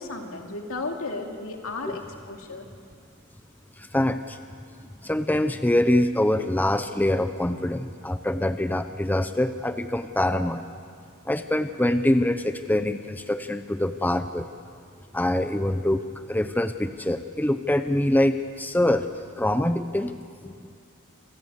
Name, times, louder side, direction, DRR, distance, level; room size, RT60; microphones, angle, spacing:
voice 1, 0.0-2.7, left 3 dB, 70° left, 2 dB, 2.7 m, -34 dB
voice 2, 3.8-4.4 5.0-10.6 11.3-14.5 15.1-16.0 16.3-19.1 19.4-20.1 20.4-20.5, left 1 dB, 10° left, 9 dB, 0.6 m, -24 dB
27.5 x 16.0 x 8.2 m, 2.3 s
head